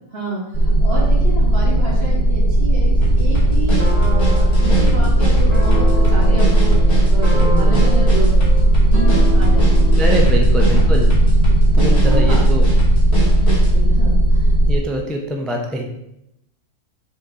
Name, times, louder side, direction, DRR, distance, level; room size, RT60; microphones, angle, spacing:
voice 1, 0.1-8.5 8.8-10.0 10.5-11.0 11.7-12.5 13.4-14.5, right 2 dB, 45° right, -5 dB, 2.3 m, -29 dB
sound 1, 0.5-14.8, right 1 dB, 75° left, 3.1 m, -15 dB
sound 2, 3.0-13.8, right 3 dB, 50° left, 2.7 m, -24 dB
sound 3, 3.8-10.0, left 1 dB, 30° right, 1.6 m, -29 dB
voice 2, 7.3-8.0 9.9-11.1 11.7-12.7 14.7-15.8, equal, ahead, 0 dB, 0.4 m, -24 dB
7.1 x 3.7 x 4.2 m, 0.83 s
omnidirectional pair, 1.4 m